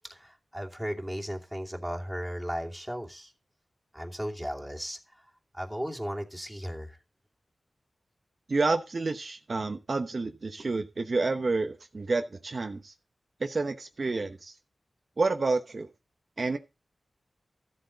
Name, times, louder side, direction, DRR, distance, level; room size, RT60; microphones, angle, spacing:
voice 1, 0.0-3.3 3.9-5.0 5.5-7.0, equal, 5° right, 2.5 m, -36 dB
voice 2, 8.5-12.9 13.4-14.5 15.2-15.9 16.4-16.6, right 3 dB, 55° right, 1.0 m, -29 dB
13.0 x 7.8 x 4.0 m
wide cardioid pair, 70°, 0 cm